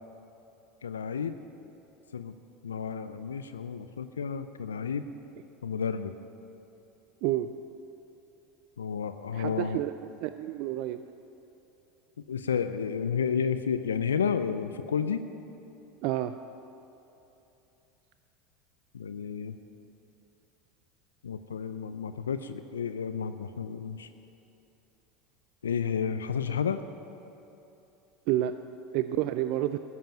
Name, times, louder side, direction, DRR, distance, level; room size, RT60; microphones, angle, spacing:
voice 1, 0.8-1.4 2.1-2.3 2.6-5.1 5.6-6.1 8.8-9.8 12.3-15.3 18.9-19.6 21.2-24.1 25.6-26.8, left 6 dB, 85° left, 10 dB, 0.5 m, -31 dB
voice 2, 9.3-11.0 16.0-16.3 28.3-28.5 28.9-29.8, right 14 dB, 60° right, 10 dB, 0.4 m, -29 dB
14.0 x 7.5 x 8.9 m, 2.9 s
hypercardioid pair, 80°, 0 cm